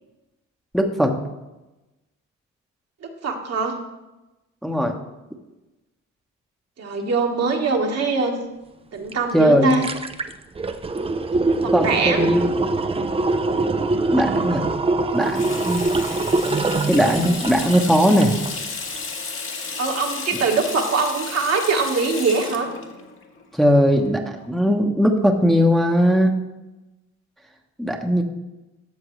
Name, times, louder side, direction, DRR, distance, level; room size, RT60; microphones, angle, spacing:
voice 1, 0.7-1.2 4.6-4.9 9.3-9.8 11.7-12.7 14.1-14.7 15.1-15.8 16.9-18.4 23.5-24.2 24.5-26.3 27.8-28.2, equal, ahead, 2 dB, 1.0 m, -19 dB
voice 2, 3.0-3.7 6.8-8.4 8.9-9.8 11.6-12.3 19.8-22.7, right 4 dB, 55° right, 2 dB, 1.6 m, -22 dB
sound 1, 9.1-9.2 9.5-18.6 19.0-19.1, right 3 dB, 20° right, 0.5 m, -23 dB
Water tap faucet / Sink (filling or washing), 15.1-24.5, left 4 dB, 45° left, 1.7 m, -33 dB
13.0 x 6.9 x 3.2 m, 1.0 s
cardioid pair, 90°, 30 cm